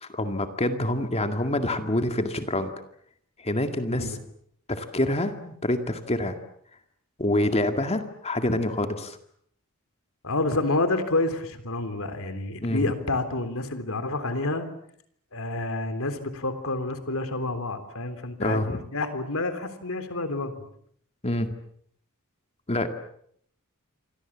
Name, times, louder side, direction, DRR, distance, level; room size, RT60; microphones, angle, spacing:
voice 1, 0.0-2.7 3.4-4.2 4.7-6.4 7.2-9.2 12.6-12.9 18.4-18.8 21.2-21.5 22.7-22.9, left 1 dB, 30° left, 7 dB, 2.1 m, -26 dB
voice 2, 10.2-14.7 15.3-20.5, left 2 dB, 70° left, 10 dB, 3.5 m, -29 dB
28.5 x 24.5 x 7.4 m, 0.67 s
head